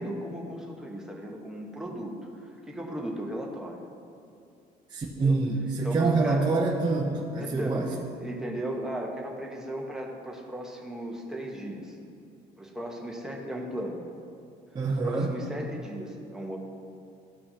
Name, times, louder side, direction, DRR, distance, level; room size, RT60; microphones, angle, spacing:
voice 1, 0.0-3.8 5.1-5.4 5.8-6.5 7.4-11.9 12.6-14.0 14.9-16.6, right 1 dB, 5° right, -2 dB, 1.2 m, -36 dB
voice 2, 4.9-7.9 14.7-15.3, right 3 dB, 25° right, -2 dB, 0.8 m, -26 dB
14.5 x 5.4 x 2.9 m, 2.5 s
cardioid pair, 110°, 17 cm